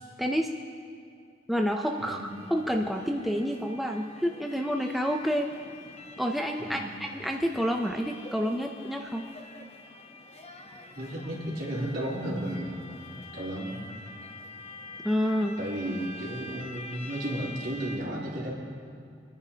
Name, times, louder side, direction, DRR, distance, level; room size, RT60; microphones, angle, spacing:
voice 1, 0.2-0.5 1.5-5.5 6.2-9.3 15.0-15.6, equal, ahead, 2 dB, 0.5 m, -29 dB
sound 1, 1.8-18.0, left 2 dB, 35° left, 0.9 m, -46 dB
voice 2, 6.6-6.9 11.0-12.8 13.3-13.8 15.6-18.5, right 1 dB, 70° right, -6 dB, 3.5 m, -33 dB
26.0 x 10.0 x 2.9 m, 2.4 s
head